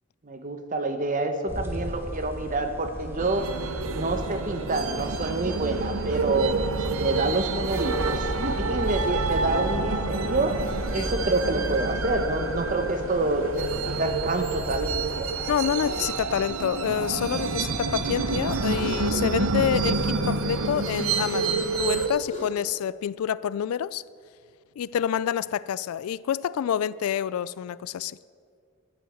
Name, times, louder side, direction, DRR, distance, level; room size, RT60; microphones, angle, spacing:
voice 1, 0.2-3.5 3.9-6.6 6.9-10.6 10.9-15.3, right 2 dB, 40° right, 0.9 m, -27 dB
sound 1, 1.5-17.4, equal, 10° right, 1.4 m, -36 dB
sound 2, 3.2-22.1, right 3 dB, 80° right, 0.9 m, -28 dB
sound 3, 11.0-11.3 12.7-12.8 14.4-14.5 14.8-15.0 15.5-15.6 15.8-16.1 17.3-17.5 18.3-18.4 19.9-20.1 20.9-21.1 21.9-22.0 22.3-22.5, left 1 dB, 35° left, 4.0 m, -43 dB
voice 2, 15.5-24.0 24.8-28.2, left 9 dB, 90° left, 0.3 m, -28 dB
13.0 x 8.2 x 7.9 m
head